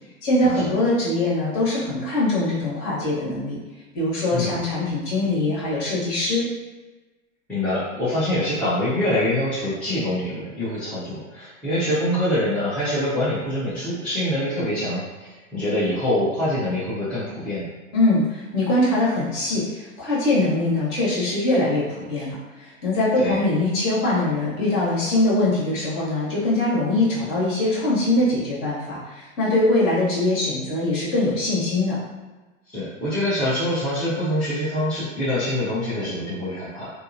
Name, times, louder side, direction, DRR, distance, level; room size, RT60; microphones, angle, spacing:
voice 1, 0.2-3.6 3.9-6.5 17.9-32.0, left 2 dB, 35° left, -7 dB, 1.1 m, -22 dB
voice 2, 7.5-17.7 23.2-23.4 32.7-36.9, left 1 dB, 5° left, -14 dB, 0.7 m, -25 dB
2.6 x 2.1 x 2.6 m, 1.2 s
hypercardioid pair, 120°, 41 cm